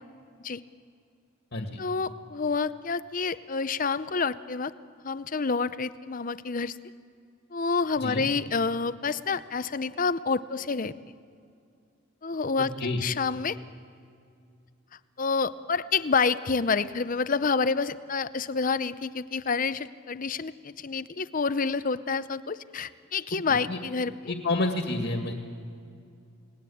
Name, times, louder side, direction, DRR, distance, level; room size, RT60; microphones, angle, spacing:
voice 1, 1.8-4.7 5.0-6.8 7.5-10.9 12.2-12.7 13.0-13.6 15.2-24.3, left 4 dB, 40° left, 14 dB, 0.7 m, -28 dB
voice 2, 24.3-25.3, left 2 dB, 60° left, 4 dB, 2.1 m, -29 dB
30.0 x 19.5 x 8.6 m, 2.4 s
head